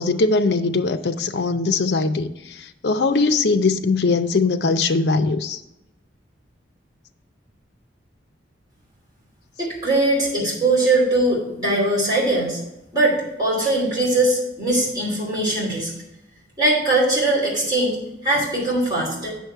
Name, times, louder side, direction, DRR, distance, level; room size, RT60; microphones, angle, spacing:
voice 1, 0.0-5.6, left 3 dB, 60° left, 8 dB, 0.5 m, -21 dB
voice 2, 9.6-12.7 12.9-15.9 16.6-19.3, right 2 dB, 20° right, -5 dB, 2.8 m, -21 dB
8.2 x 6.5 x 4.5 m, 0.91 s
head